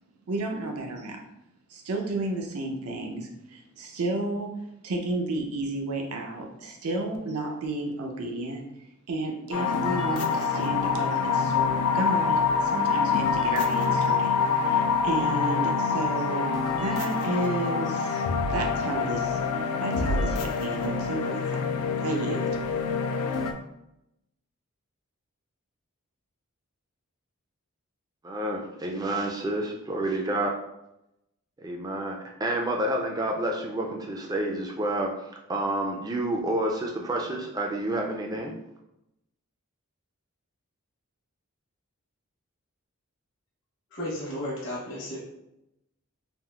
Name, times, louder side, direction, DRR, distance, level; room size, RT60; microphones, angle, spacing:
voice 1, 0.3-1.2 1.7-4.5 4.8-8.6 9.1-14.3 14.6-18.2 18.5-19.4 19.8-21.7 22.0-22.5, right 2 dB, 80° right, 2 dB, 0.5 m, -32 dB
sound 1, 9.5-23.5, left 5 dB, 85° left, 0.3 m, -26 dB
voice 2, 28.2-30.5 31.6-35.1 35.5-38.5, right 1 dB, 15° right, 1 dB, 0.3 m, -29 dB
voice 3, 43.9-45.2, left 1 dB, 60° left, -6 dB, 0.9 m, -33 dB
3.5 x 2.4 x 2.3 m, 0.86 s
head